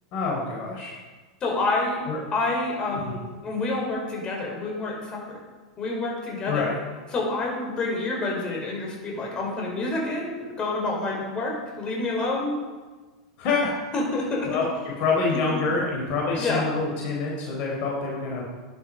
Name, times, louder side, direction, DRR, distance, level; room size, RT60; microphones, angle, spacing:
voice 1, 0.1-0.9 2.1-2.2 2.9-3.1 6.5-6.7 13.4-13.7 14.5-18.5, left 4 dB, 50° left, -2 dB, 4.1 m, -26 dB
voice 2, 1.4-2.0 2.3-5.2 5.8-6.7 7.1-12.6 13.9-14.5 15.5-15.6 16.4-16.6, left 2 dB, 30° left, -1 dB, 5.0 m, -28 dB
15.0 x 10.5 x 5.4 m, 1.3 s
hypercardioid pair, 95°, 3 cm